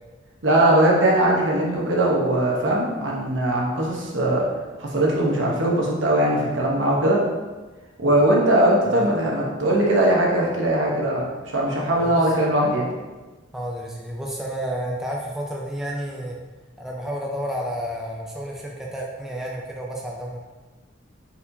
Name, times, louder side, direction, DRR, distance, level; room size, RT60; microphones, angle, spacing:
voice 1, 0.4-4.5 4.8-7.2 8.0-11.3 11.5-12.9, right 1 dB, 75° right, -3 dB, 1.0 m, -20 dB
voice 2, 12.0-12.3 13.5-16.4 16.8-20.4, equal, ahead, -3 dB, 0.4 m, -31 dB
4.2 x 4.1 x 2.7 m, 1.2 s
head